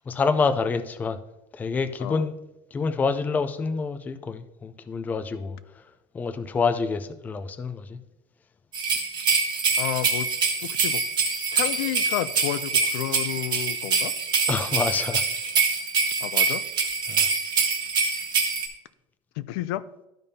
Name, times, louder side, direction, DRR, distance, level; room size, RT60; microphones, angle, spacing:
voice 1, 0.1-1.2 1.5-2.4 2.7-5.6 6.1-8.0 14.5-15.2 17.1-17.3, left 4 dB, 15° left, 10 dB, 0.4 m, -27 dB
sound 1, 8.7-18.7, right 5 dB, 35° right, 1.3 m, -25 dB
voice 2, 9.8-10.3 10.7-11.0 11.5-14.1 16.2-16.6 19.4-19.8, left 14 dB, 85° left, 14 dB, 0.4 m, -31 dB
12.5 x 5.2 x 2.7 m, 0.94 s
cardioid pair, 160°, 12 cm